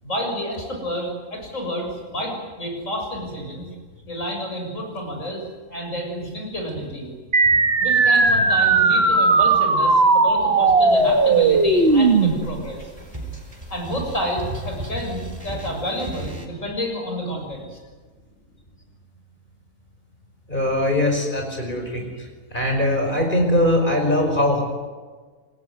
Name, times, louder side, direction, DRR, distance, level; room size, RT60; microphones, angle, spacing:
voice 1, 0.0-3.7 4.1-5.4 5.7-7.1 7.8-12.8 13.7-17.8, equal, 65° left, 1 dB, 7.4 m, -29 dB
sound 1, 7.3-12.3, right 3 dB, 45° right, 2.1 m, -17 dB
sound 2, 10.9-16.5, right 1 dB, 25° right, 4.9 m, -36 dB
voice 2, 20.5-22.0 22.5-24.6, left 1 dB, 35° left, 2 dB, 5.4 m, -21 dB
26.5 x 20.5 x 9.5 m, 1.4 s
omnidirectional pair, 1.5 m